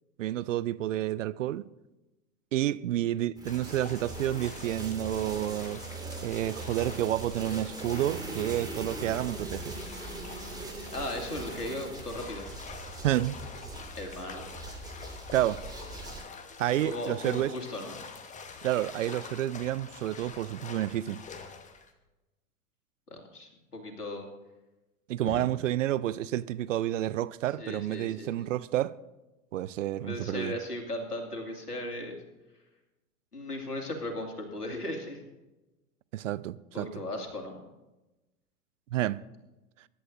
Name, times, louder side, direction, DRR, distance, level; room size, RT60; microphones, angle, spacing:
voice 1, 0.2-1.7 2.5-5.8 6.2-9.7 13.0-13.4 15.3-15.6 16.6-17.5 18.6-21.2 25.1-28.9 29.5-30.5 36.1-36.9 38.9-39.2, right 13 dB, 55° right, 0.5 m, -30 dB
sound 1, 3.4-16.2, right 2 dB, 10° right, 2.3 m, -41 dB
sound 2, 3.5-21.9, left 5 dB, 15° left, 1.1 m, -46 dB
voice 2, 10.9-12.5 14.0-14.4 16.8-18.0 23.1-24.3 25.3-25.4 27.6-28.5 30.0-32.2 33.3-35.2 36.7-37.7, left 1 dB, 85° left, 2.5 m, -37 dB
22.5 x 11.0 x 2.7 m
figure-of-eight pair, 95°, 45 cm